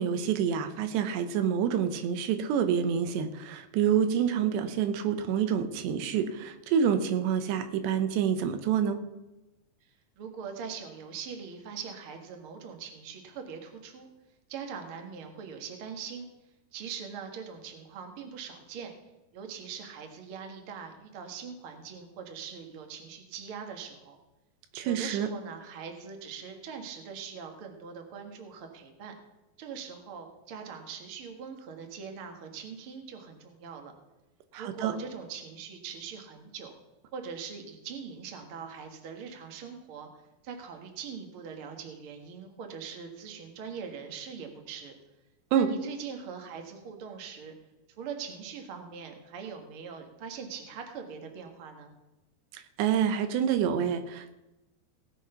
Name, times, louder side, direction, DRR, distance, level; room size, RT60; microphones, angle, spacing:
voice 1, 0.0-9.0 24.7-25.3 34.5-34.9 45.5-45.7 52.5-54.4, right 8 dB, 90° right, 9 dB, 3.2 m, -27 dB
voice 2, 10.2-14.1 14.5-16.3 16.7-18.9 19.3-24.2 24.8-29.1 29.6-33.9 34.6-36.7 37.1-40.1 40.4-45.0 45.5-47.5 48.0-51.9, right 6 dB, 50° right, 4 dB, 1.7 m, -42 dB
17.5 x 7.0 x 5.7 m, 1.0 s
omnidirectional pair, 4.8 m